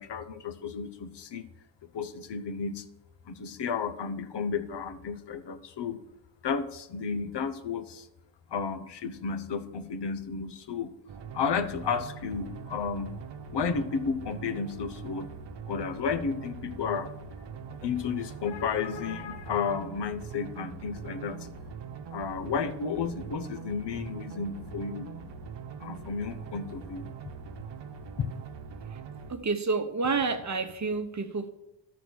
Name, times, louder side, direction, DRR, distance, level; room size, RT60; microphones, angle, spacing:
voice 1, 0.0-1.5 1.9-2.8 3.3-6.0 6.4-8.1 8.5-10.9 11.3-13.2 13.5-15.3 15.6-17.1 17.8-21.5 22.1-25.1 25.8-27.1, left 5 dB, 65° left, 8 dB, 1.0 m, -32 dB
sound 1, 11.1-29.3, right 6 dB, 65° right, 1.0 m, -42 dB
voice 2, 29.3-31.5, right 4 dB, 35° right, 8 dB, 1.1 m, -29 dB
12.5 x 4.3 x 6.4 m, 0.88 s
cardioid pair, 65°, 45 cm